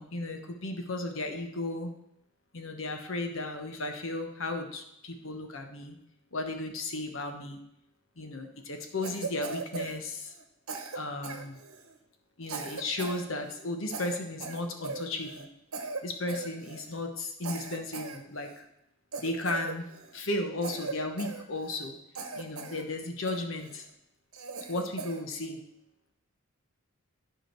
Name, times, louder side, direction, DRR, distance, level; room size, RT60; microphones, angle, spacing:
voice 1, 0.0-1.9 2.5-6.0 6.3-7.6 8.2-10.3 10.9-11.6 12.4-15.5 16.0-18.6 19.2-19.9 20.1-22.0 22.3-23.9 24.7-25.6, left 2 dB, 65° left, 4 dB, 1.1 m, -35 dB
Cough, 9.0-10.4 10.7-11.9 12.4-13.2 13.5-13.6 13.9-15.5 15.7-16.0 16.3-16.9 17.4-18.6 19.1-20.2 20.6-21.9 22.1-22.8 23.3-23.8 24.3-25.2, right 4 dB, 90° right, 1.1 m, -39 dB
12.0 x 5.0 x 4.5 m, 0.79 s
head